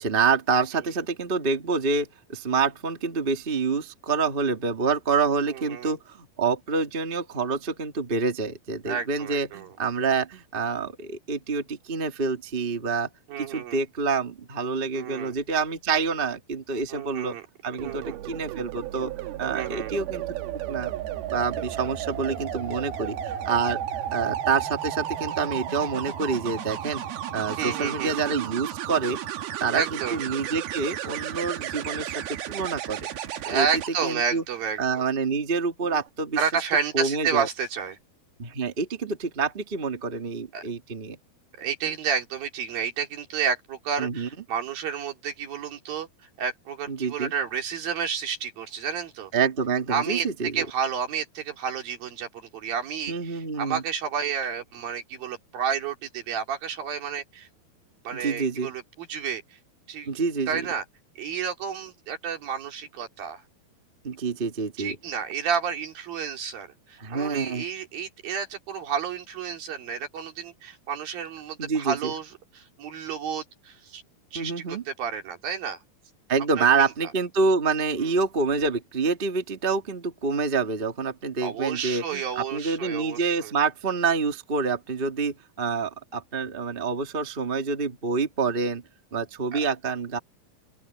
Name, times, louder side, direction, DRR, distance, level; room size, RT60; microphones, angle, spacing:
voice 1, 0.0-13.1 13.4-17.4 17.6-19.1 19.4-20.3 20.7-20.9 21.3-23.8 24.1-27.0 27.3-29.2 29.6-33.1 33.5-33.7 34.0-34.4 34.8-36.4 36.9-37.5 38.4-41.2 44.0-44.3 46.9-47.3 49.3-50.6 53.1-53.8 58.1-58.7 60.0-60.7 64.0-64.9 67.0-67.6 71.6-72.1 74.3-74.8 76.3-88.8 89.1-90.2, right 5 dB, 20° right, 1.5 m, -27 dB
voice 2, 5.5-6.0 8.9-9.7 13.3-13.8 14.9-15.3 16.9-17.4 17.7-18.2 19.5-19.9 27.6-28.1 29.7-30.2 33.4-35.0 36.4-38.0 40.5-40.6 41.6-46.1 46.4-49.3 49.9-50.3 50.5-57.5 58.0-59.4 59.9-60.1 60.5-60.8 61.2-63.4 64.8-74.0 74.3-75.8 76.6-76.9 78.0-78.1 81.4-83.5 89.5-89.6, right 7 dB, 70° right, 4.7 m, -31 dB
sound 1, 17.8-33.9 35.8-36.1, right 11 dB, 90° right, 3.4 m, -33 dB
open air
omnidirectional pair, 4.3 m